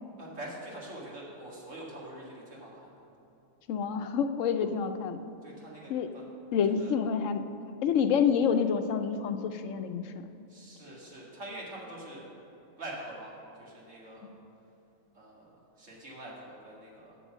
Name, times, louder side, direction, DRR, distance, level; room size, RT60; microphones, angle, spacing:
voice 1, 0.2-3.0 4.6-4.7 5.4-6.2 6.7-6.9 10.5-12.2 12.8-14.3 15.1-17.2, right 1 dB, 70° right, -4 dB, 2.5 m, -44 dB
voice 2, 3.7-5.2 5.9-6.1 6.5-7.5 7.8-10.1 14.2-14.3, left 7 dB, 75° left, 9 dB, 0.9 m, -28 dB
8.1 x 7.0 x 7.2 m, 2.9 s
omnidirectional pair, 1.3 m